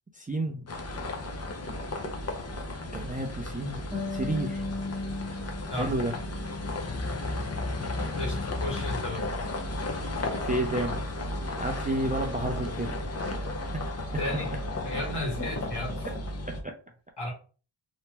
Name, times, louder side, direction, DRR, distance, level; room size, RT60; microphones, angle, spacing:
voice 1, 0.1-0.7 2.9-3.8 4.1-4.6 5.8-6.1 10.3-11.0 11.6-13.0 13.7-13.8 16.4-16.7, right 1 dB, 20° right, 0.4 m, -31 dB
sound 1, 0.7-16.6, left 2 dB, 30° left, 0.6 m, -34 dB
Harp, 3.9-7.3 7.6-8.7, left 3 dB, ahead, 0.9 m, -38 dB
voice 2, 8.1-9.3 14.2-16.1 17.2-17.3, left 1 dB, 55° left, 1.5 m, -34 dB
2.9 x 2.1 x 3.3 m
wide cardioid pair, 65°, 48 cm